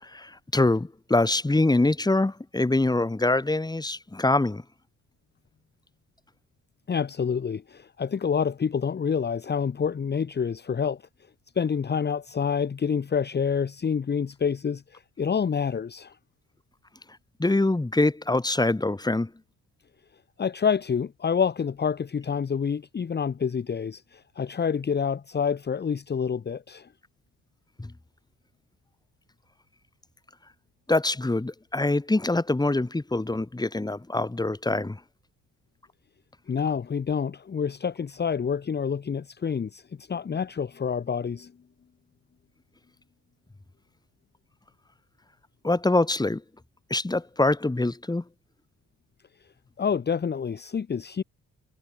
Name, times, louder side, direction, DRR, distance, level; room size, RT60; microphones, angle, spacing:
voice 1, 0.0-4.6 17.4-19.3 27.8-27.9 30.9-35.0 45.6-46.4 46.9-48.2, left 2 dB, 15° left, 3.1 m, -24 dB
voice 2, 6.9-11.0 11.5-16.2 20.4-26.9 36.5-41.5 49.8-51.2, left 6 dB, 35° left, 1.3 m, -27 dB
cardioid pair, 90°, 30 cm